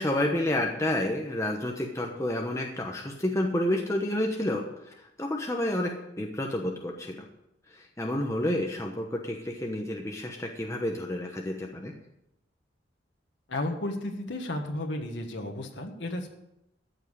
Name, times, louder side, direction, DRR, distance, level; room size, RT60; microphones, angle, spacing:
voice 1, 0.0-7.2 7.7-11.9, left 1 dB, 15° left, 1 dB, 1.0 m, -30 dB
voice 2, 13.5-16.3, left 1 dB, 70° left, 2 dB, 1.6 m, -33 dB
14.0 x 5.6 x 8.2 m, 0.85 s
head